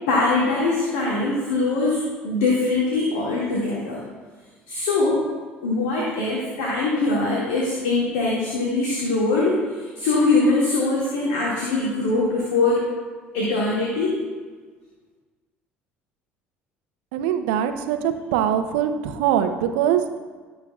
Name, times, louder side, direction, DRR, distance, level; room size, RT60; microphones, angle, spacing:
voice 1, 0.1-4.0 4.7-5.2 5.6-12.9 13.3-14.1, left 3 dB, 70° left, -5 dB, 2.1 m, -22 dB
voice 2, 17.1-20.0, right 9 dB, 70° right, 8 dB, 0.9 m, -22 dB
18.5 x 6.7 x 2.4 m, 1.5 s
figure-of-eight pair, 60°, 6 cm